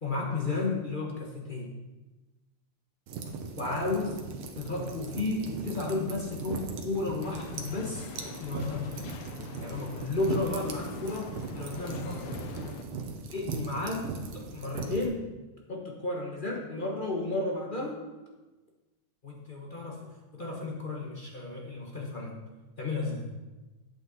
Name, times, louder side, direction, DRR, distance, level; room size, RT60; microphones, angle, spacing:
voice 1, 0.0-1.7 3.6-4.2 4.6-8.0 8.4-9.1 9.6-12.4 13.3-14.0 14.3-15.2 15.7-18.0 19.2-22.4 22.8-23.3, left 3 dB, 35° left, -1 dB, 0.8 m, -33 dB
sound 1, 3.1-15.1, right 4 dB, 90° right, 1.8 m, -39 dB
sound 2, 7.2-12.8, left 6 dB, 90° left, 1.6 m, -44 dB
8.6 x 8.2 x 4.0 m, 1.1 s
omnidirectional pair, 2.3 m